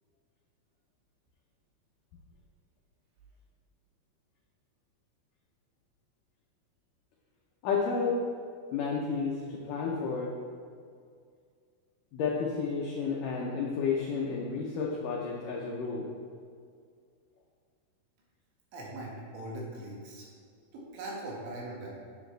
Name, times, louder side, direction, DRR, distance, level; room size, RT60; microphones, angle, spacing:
voice 1, 7.6-8.2 8.7-10.3 12.1-16.1, left 5 dB, 85° left, -2 dB, 1.8 m, -31 dB
voice 2, 18.7-20.3 20.7-22.0, right 1 dB, 90° right, -4 dB, 4.1 m, -40 dB
10.5 x 7.6 x 3.3 m, 2.2 s
omnidirectional pair, 5.0 m